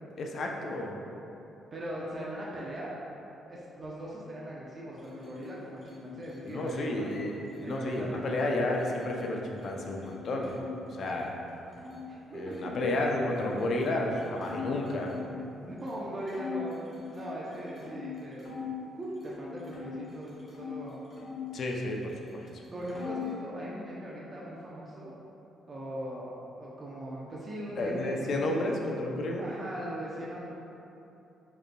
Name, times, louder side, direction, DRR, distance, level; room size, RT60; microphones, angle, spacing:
voice 1, 0.2-1.0 6.4-10.6 10.9-11.3 12.3-15.1 21.5-22.5 27.8-29.4, left 1 dB, 60° left, 0 dB, 0.4 m, -31 dB
voice 2, 1.7-3.0 3.5-7.1 7.6-8.5 12.1-12.9 15.6-18.4 19.0-21.0 22.7-25.1 25.7-28.3 29.4-30.5, right 1 dB, 35° right, -6 dB, 0.5 m, -40 dB
sound 1, 4.9-10.6 10.9-11.9 12.5-15.4 15.9-16.0 16.3-18.7 19.1-20.7 21.1-22.2 22.5-23.4, left 5 dB, 40° left, 1.1 m, -44 dB
4.7 x 3.1 x 2.2 m, 2.9 s
cardioid pair, 90°, 0 cm